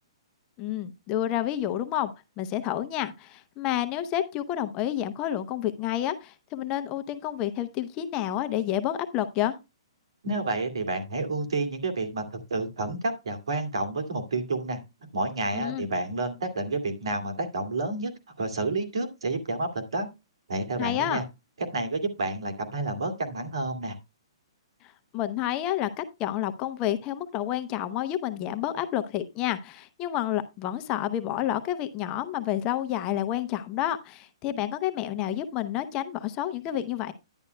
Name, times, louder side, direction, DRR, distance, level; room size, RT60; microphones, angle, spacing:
voice 1, 0.6-2.1 2.4-9.5 15.5-15.9 20.8-21.2 25.1-37.1, left 12 dB, 25° left, 9 dB, 0.8 m, -29 dB
voice 2, 10.2-14.8 15.1-18.1 18.4-20.1 20.5-21.2 21.7-24.0, right 2 dB, 80° right, 5 dB, 2.3 m, -30 dB
10.5 x 10.0 x 2.2 m, 0.25 s
hypercardioid pair, 145°, 3 cm